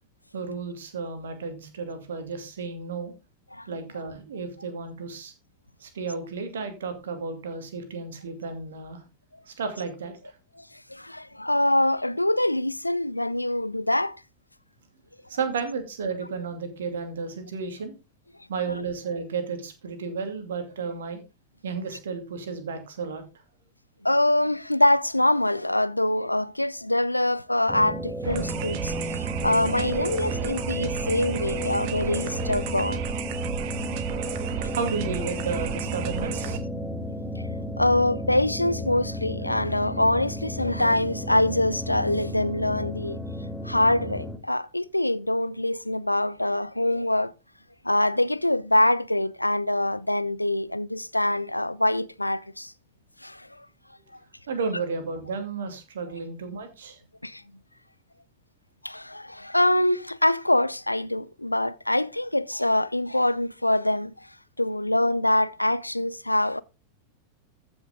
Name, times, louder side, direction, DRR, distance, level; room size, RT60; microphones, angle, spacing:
voice 1, 0.3-3.1 3.7-5.3 5.8-9.0 9.5-10.1 15.3-17.9 18.5-21.2 21.6-23.2 34.7-36.6 37.5-37.6 54.5-57.0, right 5 dB, 65° right, 2.5 m, -33 dB
voice 2, 10.9-14.2 24.0-33.1 37.8-43.2 43.6-47.3 47.8-52.7 53.2-53.5 57.2-57.4 58.8-64.1 64.6-66.6, left 1 dB, 85° left, 0.4 m, -24 dB
sound 1, 27.7-44.4, left 1 dB, ahead, 1.7 m, -33 dB
sound 2, 28.2-36.6, right 11 dB, 45° right, 1.4 m, -33 dB
14.5 x 6.4 x 3.6 m
figure-of-eight pair, 90°, 0 cm